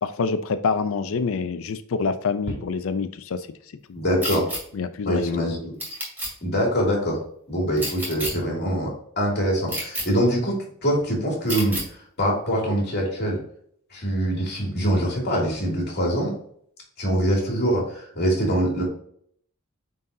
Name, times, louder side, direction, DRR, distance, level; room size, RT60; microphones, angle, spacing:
voice 1, 0.0-3.5 4.7-5.2, left 5 dB, 65° left, 11 dB, 0.5 m, -26 dB
voice 2, 3.9-4.5 5.0-5.7 6.4-7.2 7.5-10.6 10.8-11.8 12.2-13.4 13.9-16.4 17.0-18.9, equal, 50° left, -2 dB, 2.6 m, -24 dB
sound 1, 4.2-4.6 5.8-6.3 7.8-8.3 9.7-10.0 11.5-11.8, equal, 10° right, 2.5 m, -29 dB
9.2 x 4.0 x 2.7 m, 0.63 s
head